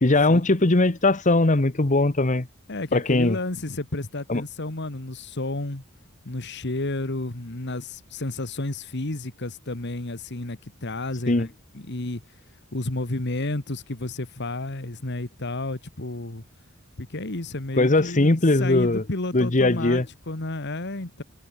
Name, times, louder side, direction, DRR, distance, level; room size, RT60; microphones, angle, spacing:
voice 1, 0.0-2.5 2.9-3.4 4.3-4.4 11.3-11.5 17.8-19.0 19.3-20.0, left 2 dB, 40° left, 1.2 m, -20 dB
voice 2, 2.7-5.8 6.3-11.5 11.7-12.2 12.7-16.4 17.0-21.2, left 2 dB, 55° left, 1.9 m, -31 dB
head